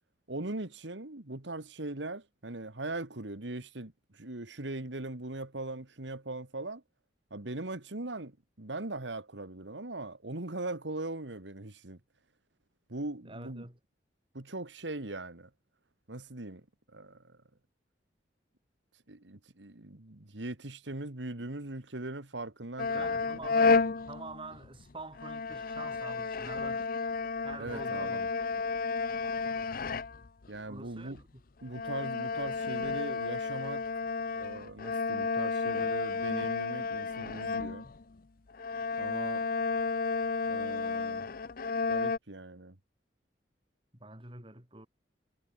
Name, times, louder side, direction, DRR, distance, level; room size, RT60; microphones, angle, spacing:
voice 1, 0.3-6.8 7.3-12.0 12.9-13.7 14.3-15.5 16.1-17.4 19.1-23.8 27.6-28.3 30.5-31.2 31.6-33.9 34.3-37.9 39.0-39.5 40.5-41.3 41.9-42.8, right 2 dB, 80° right, 2.0 m, -40 dB
voice 2, 13.2-13.8 22.8-26.9 27.4-28.2 30.7-31.4 44.0-44.9, right 3 dB, 30° right, 4.6 m, -46 dB
sound 1, 22.8-24.8 25.1-30.5 31.1-31.2 31.7-38.2 38.5-42.2, left 4 dB, 50° left, 0.7 m, -32 dB
head